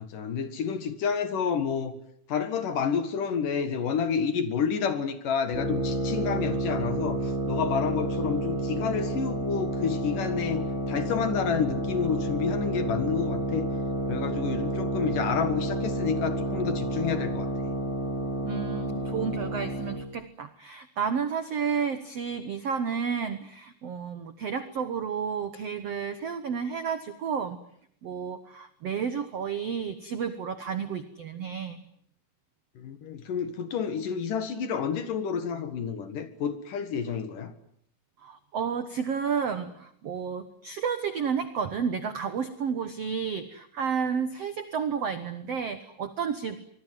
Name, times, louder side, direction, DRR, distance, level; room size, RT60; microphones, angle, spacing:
voice 1, 0.0-1.9 2.3-7.2 7.5-13.7 14.1-17.7 32.8-37.5, left 7 dB, 60° left, 10 dB, 3.0 m, -29 dB
sound 1, 5.5-20.1, right 1 dB, 15° right, 4.5 m, -30 dB
voice 2, 18.4-27.6 28.0-31.8 38.2-46.6, right 6 dB, 75° right, 11 dB, 1.4 m, -31 dB
25.0 x 22.0 x 9.3 m, 0.68 s
omnidirectional pair, 4.8 m